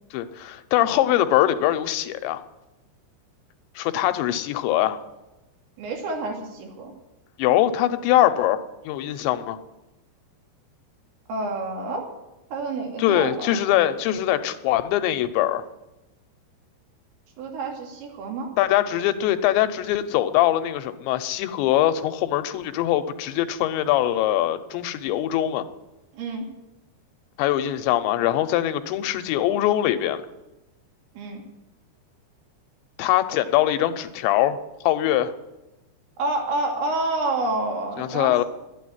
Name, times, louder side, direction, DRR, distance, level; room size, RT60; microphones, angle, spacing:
voice 1, 0.1-2.4 3.8-5.0 7.4-9.6 13.0-15.6 18.6-25.7 27.4-30.2 33.0-34.6 34.8-35.3 38.0-38.4, left 13 dB, 85° left, 10 dB, 3.1 m, -22 dB
voice 2, 5.8-6.9 11.3-12.0 12.5-13.6 17.4-18.5 26.1-26.5 31.1-31.4 36.2-38.5, right 2 dB, 85° right, 0 dB, 4.9 m, -28 dB
12.5 x 9.3 x 9.4 m, 0.98 s
omnidirectional pair, 5.1 m